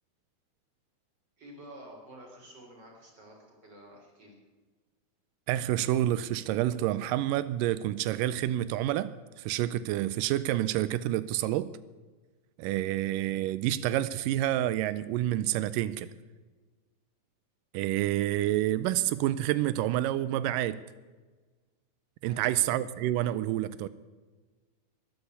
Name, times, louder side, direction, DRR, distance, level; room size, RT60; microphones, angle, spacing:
voice 1, 1.4-4.4 22.3-22.7, right 1 dB, 25° right, 1 dB, 4.0 m, -50 dB
voice 2, 5.5-11.7 12.6-16.1 17.7-20.8 22.2-23.9, right 13 dB, 90° right, 15 dB, 1.9 m, -28 dB
13.5 x 11.5 x 8.0 m, 1.3 s
omnidirectional pair, 4.5 m